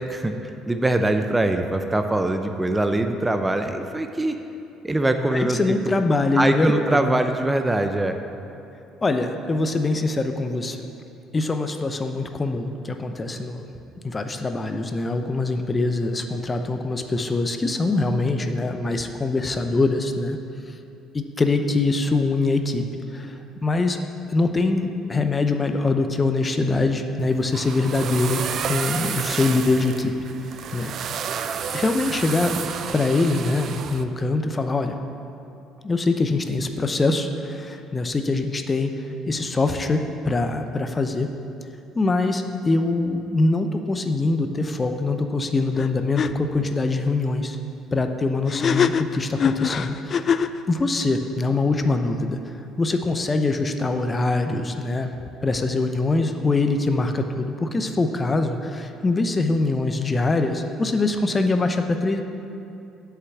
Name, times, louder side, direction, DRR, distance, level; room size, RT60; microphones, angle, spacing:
voice 1, 0.0-4.4 4.8-5.6 5.9-6.0 6.4-8.2, right 2 dB, 15° right, 6 dB, 0.6 m, -23 dB
voice 2, 5.3-7.2 9.0-10.8 11.3-13.6 14.0-20.4 20.7-20.8 21.1-22.8 23.1-24.0 24.3-30.1 30.7-30.9 31.7-32.5 32.9-35.0 35.8-38.9 39.3-41.3 41.9-47.6 47.9-52.4 52.8-55.1 55.4-62.2, left 3 dB, 30° left, 6 dB, 0.7 m, -23 dB
sound 1, 27.2-34.0, right 7 dB, 55° right, 0.5 m, -31 dB
sound 2, 45.8-45.9 46.2-46.3 48.5-50.6, left 7 dB, 45° left, 0.3 m, -22 dB
7.9 x 5.8 x 7.2 m, 2.7 s
hypercardioid pair, 60°, 0 cm